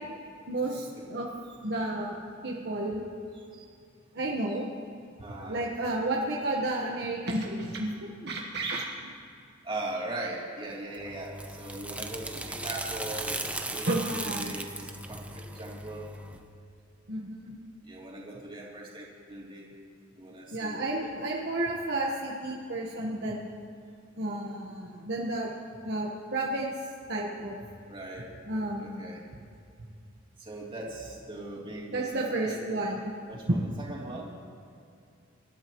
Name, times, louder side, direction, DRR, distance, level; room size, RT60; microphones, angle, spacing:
voice 1, 0.5-1.3 1.6-2.1 2.4-3.0 4.1-4.7 5.5-7.9 8.2-9.1 13.9-14.5 17.1-17.5 20.5-23.5 24.2-25.5 25.8-27.6 28.5-29.1 31.9-33.2 33.5-33.6, right 2 dB, 55° right, -2 dB, 1.3 m, -31 dB
voice 2, 5.2-5.6 9.6-16.2 17.8-19.8 20.1-21.1 27.9-28.3 28.8-29.3 30.4-32.6 33.3-34.3, right 1 dB, 25° right, -4 dB, 3.1 m, -40 dB
sound 1, 10.9-16.4, right 2 dB, 5° right, 0.7 m, -37 dB
26.0 x 12.5 x 3.1 m, 2.5 s
head